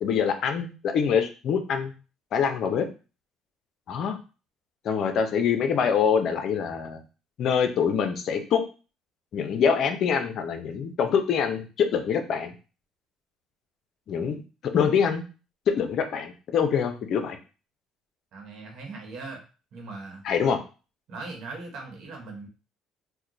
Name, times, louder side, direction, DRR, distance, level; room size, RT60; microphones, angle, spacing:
voice 1, 0.0-1.9 2.3-2.9 3.9-4.2 4.8-7.0 7.4-8.6 9.3-12.5 14.1-14.4 14.7-15.2 15.7-17.4 20.2-20.6, left 7 dB, 60° left, 6 dB, 0.6 m, -25 dB
voice 2, 18.3-19.4 19.7-20.2 21.1-22.5, right 3 dB, 65° right, 2 dB, 1.1 m, -39 dB
2.9 x 2.2 x 3.8 m, 0.33 s
supercardioid pair, 95°, 0 cm